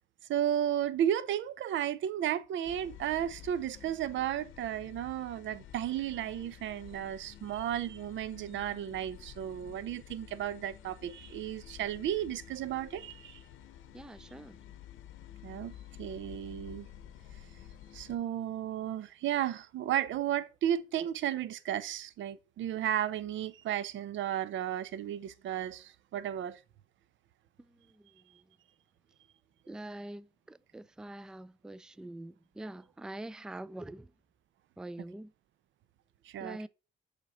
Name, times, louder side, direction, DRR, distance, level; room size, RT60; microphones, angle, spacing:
voice 1, 0.3-13.4 15.4-15.7 16.0-16.9 17.9-26.6 36.2-36.6, right 11 dB, 70° right, 0.6 m, -34 dB
sound 1, 2.6-18.2, left 10 dB, 85° left, 0.8 m, -51 dB
voice 2, 13.9-14.6 27.6-28.4 29.7-34.1 34.8-35.3 36.4-36.7, right 1 dB, 5° right, 0.3 m, -45 dB
7.3 x 5.1 x 3.9 m
cardioid pair, 90°, 20 cm